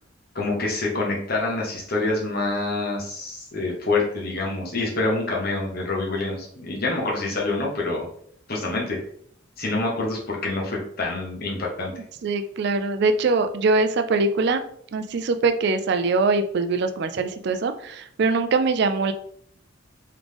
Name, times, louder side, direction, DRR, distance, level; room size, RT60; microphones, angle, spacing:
voice 1, 0.3-8.1 8.5-9.0 9.6-11.9, left 2 dB, 50° left, -2 dB, 1.2 m, -26 dB
voice 2, 12.2-14.6 14.9-19.1, right 3 dB, 55° right, 8 dB, 0.4 m, -22 dB
3.7 x 3.5 x 3.3 m, 0.63 s
head